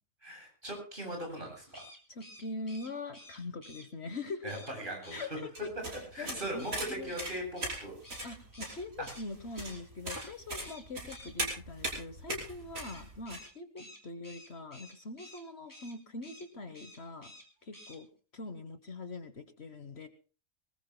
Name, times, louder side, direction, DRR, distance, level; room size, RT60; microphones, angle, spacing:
voice 1, 0.2-1.8 4.4-5.4 5.9-8.0 9.0-9.1, right 1 dB, 40° right, 1 dB, 8.2 m, -39 dB
sound 1, 1.7-3.9 4.5-4.7 5.0-5.3 6.6-9.2 9.5-9.8 10.1-10.3 10.6-11.3 12.8-15.4 15.7-15.9 16.2-16.5 16.7-17.4 17.7-18.0, left 1 dB, 15° left, 3.6 m, -52 dB
voice 2, 2.1-4.5 5.1-5.7 6.2-6.7 7.0-7.1 8.2-17.3 17.6-18.1 18.3-20.1, left 3 dB, 55° left, 9 dB, 1.3 m, -43 dB
sound 2, 5.5-13.4, right 1 dB, 80° right, 5.7 m, -39 dB
24.0 x 20.5 x 2.2 m, 0.37 s
omnidirectional pair, 1.4 m